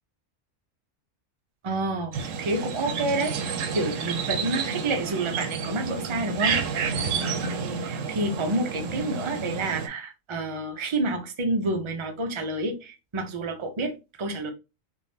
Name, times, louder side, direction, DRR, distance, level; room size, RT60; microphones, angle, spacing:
voice 1, 1.6-2.1 2.4-6.9 7.6-14.5, right 2 dB, 40° right, 0.4 m, -29 dB
sound 1, 2.1-9.9, right 5 dB, 75° right, 1.0 m, -30 dB
3.4 x 2.6 x 2.7 m
omnidirectional pair, 1.4 m